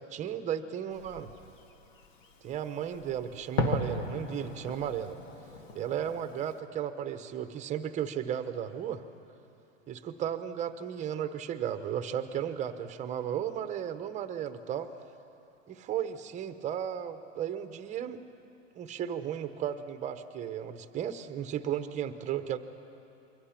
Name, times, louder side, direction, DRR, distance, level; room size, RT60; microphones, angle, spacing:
voice 1, 0.1-1.3 2.4-5.2 5.7-9.0 9.9-14.9 15.7-18.2 18.8-22.6, right 9 dB, 20° right, 10 dB, 0.9 m, -34 dB
Fireworks, 0.9-6.6, left 3 dB, 85° left, 2.0 m, -37 dB
27.0 x 23.0 x 5.9 m, 2.9 s
supercardioid pair, 145°, 38 cm